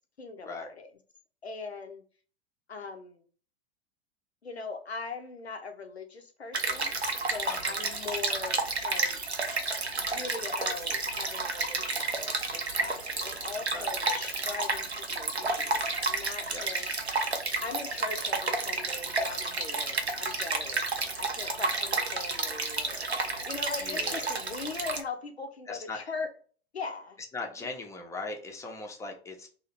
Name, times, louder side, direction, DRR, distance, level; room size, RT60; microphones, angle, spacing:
voice 1, 0.2-0.9 1.4-2.0 2.7-3.2 4.4-6.9 7.3-9.2 10.0-16.9 17.6-20.8 21.1-26.3 26.7-27.2, left 4 dB, 80° left, 5 dB, 0.7 m, -40 dB
Stream, 6.5-25.0, right 3 dB, 85° right, 0.6 m, -31 dB
voice 2, 7.4-7.8 13.7-14.0 16.5-16.9 23.8-24.3 25.7-26.1 27.3-29.5, left 3 dB, 10° left, 2 dB, 0.6 m, -39 dB
2.8 x 2.5 x 4.1 m, 0.42 s
figure-of-eight pair, 90°, 31 cm